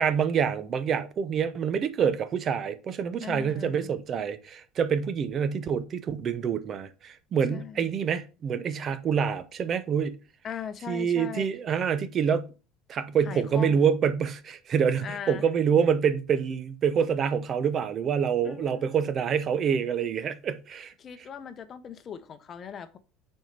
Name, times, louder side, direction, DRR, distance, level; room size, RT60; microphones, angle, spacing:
voice 1, 0.0-10.2 10.9-12.5 12.9-20.9, right 7 dB, 40° right, 0.8 m, -26 dB
voice 2, 3.2-4.0 7.5-8.0 10.4-11.5 13.2-13.9 15.0-15.4 18.4-19.0 21.0-23.0, left 7 dB, 35° left, 0.7 m, -39 dB
6.1 x 4.5 x 5.2 m
supercardioid pair, 110°, 0 cm